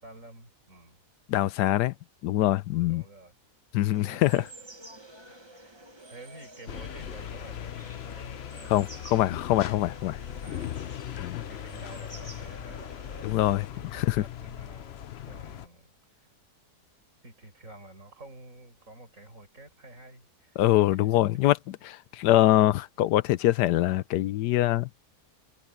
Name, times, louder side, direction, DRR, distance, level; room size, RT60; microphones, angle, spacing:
voice 1, 0.0-1.0 2.9-3.3 4.0-4.5 5.3-9.3 10.3-11.0 11.5-12.9 13.7-16.3 17.2-20.6 20.9-21.2, right 2 dB, 50° right, 7.0 m, -50 dB
voice 2, 1.3-1.9 2.2-3.0 3.7-4.4 8.7-10.2 11.2-11.4 13.2-14.2 20.6-21.6 21.8-24.9, left 15 dB, 90° left, 1.2 m, -24 dB
sound 1, 3.9-13.7, right 1 dB, 15° right, 1.7 m, -49 dB
sound 2, 6.7-15.7, left 10 dB, 60° left, 0.7 m, -39 dB
omnidirectional pair, 1.7 m